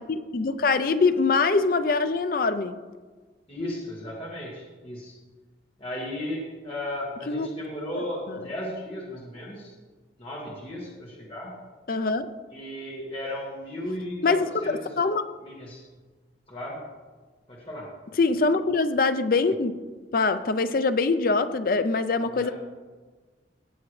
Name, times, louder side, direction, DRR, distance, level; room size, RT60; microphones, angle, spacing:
voice 1, 0.0-2.7 7.3-7.5 7.9-8.0 11.9-12.3 14.2-15.3 18.2-19.7 20.1-22.5, left 4 dB, 50° left, 11 dB, 0.5 m, -23 dB
voice 2, 3.5-5.2 5.8-9.7 10.2-11.6 12.5-15.0 15.4-15.9 16.5-16.8 17.5-17.9 22.3-22.5, left 1 dB, 30° left, -5 dB, 1.9 m, -35 dB
17.0 x 7.2 x 3.2 m, 1.4 s
head